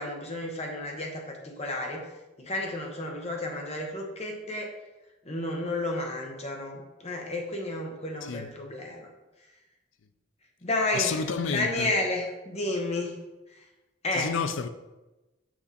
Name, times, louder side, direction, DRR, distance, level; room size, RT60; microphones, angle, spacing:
voice 1, 0.0-2.1 2.4-4.7 5.2-9.1 10.6-13.2 13.5-13.7 14.0-14.3, left 2 dB, 35° left, 1.2 m, -32 dB
voice 2, 10.9-11.9 14.1-14.7, left 5 dB, 75° left, 0.5 m, -30 dB
6.0 x 5.8 x 4.2 m
head